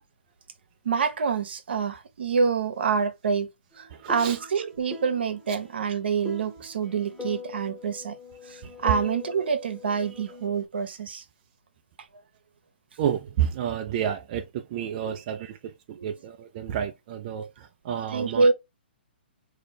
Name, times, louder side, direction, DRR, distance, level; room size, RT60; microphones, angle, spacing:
voice 1, 0.8-3.5 3.8-8.1 8.5-11.2 15.0-15.2 16.0-16.1 18.1-18.5, right 5 dB, 70° right, 0.9 m, -26 dB
sound 1, 3.7-10.6, left 4 dB, 5° left, 1.0 m, -42 dB
voice 2, 13.0-14.4 14.7-15.5 16.0-17.5 17.9-18.5, right 9 dB, 40° right, 0.4 m, -29 dB
4.0 x 2.8 x 3.3 m
hypercardioid pair, 145°, 6 cm